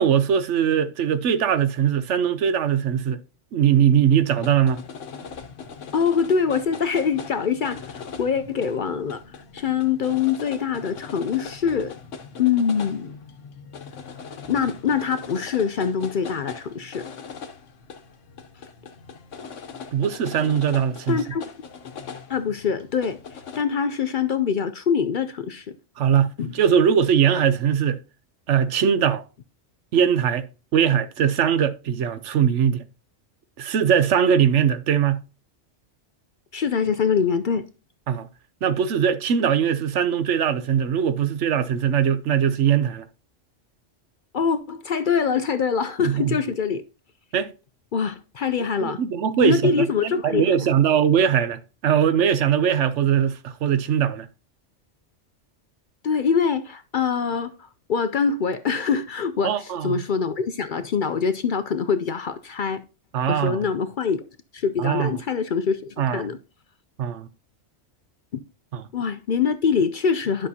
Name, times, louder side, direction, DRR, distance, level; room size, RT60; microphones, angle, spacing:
voice 1, 0.0-3.2 3.5-4.8 19.9-21.2 26.0-28.0 28.5-29.2 29.9-30.5 30.7-32.8 33.6-35.2 38.1-38.3 38.6-43.1 46.0-46.4 47.3-47.5 48.8-54.3 59.4-60.0 63.1-63.6 64.8-65.1 66.0-66.3 67.0-67.3 68.7-68.8, right 8 dB, 80° right, 1.0 m, -21 dB
sound 1, 4.3-23.6, left 6 dB, 85° left, 1.2 m, -40 dB
voice 2, 5.9-9.2 9.5-12.0 12.4-13.1 14.5-17.1 21.1-21.4 22.3-23.2 23.5-25.7 26.4-26.5 36.5-37.7 44.3-46.8 47.9-49.0 49.4-50.7 56.0-62.8 63.3-64.3 64.5-66.4 68.9-70.5, left 6 dB, 55° left, 0.6 m, -24 dB
11.0 x 6.1 x 2.8 m
omnidirectional pair, 1.2 m